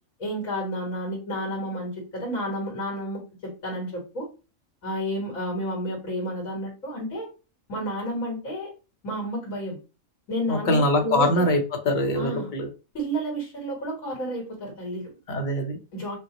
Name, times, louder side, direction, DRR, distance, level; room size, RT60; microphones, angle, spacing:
voice 1, 0.2-4.3 4.8-7.3 7.7-8.7 9.0-9.8 10.3-11.4 12.1-12.5 12.9-15.1 15.9-16.2, equal, 90° left, -2 dB, 2.2 m, -31 dB
voice 2, 10.5-12.7 15.3-15.8, left 1 dB, 40° left, 4 dB, 1.0 m, -23 dB
5.3 x 2.3 x 2.9 m, 0.32 s
omnidirectional pair, 1.4 m